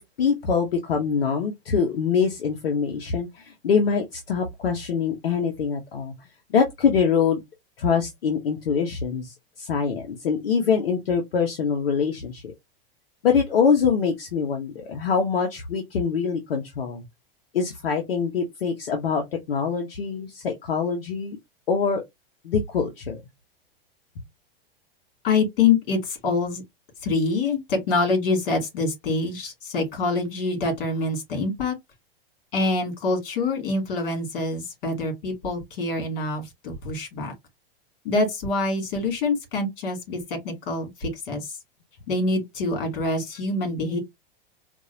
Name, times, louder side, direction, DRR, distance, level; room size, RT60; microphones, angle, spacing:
voice 1, 0.0-6.1 6.5-7.4 7.8-12.5 13.2-17.0 17.5-21.4 21.7-22.0 22.4-23.2, left 6 dB, 85° left, 1.1 m, -24 dB
voice 2, 25.2-26.6 27.0-31.8 32.5-37.3 38.0-41.6 42.1-44.0, left 3 dB, 65° left, 2.8 m, -25 dB
4.6 x 2.7 x 2.8 m
hypercardioid pair, 110°, 29 cm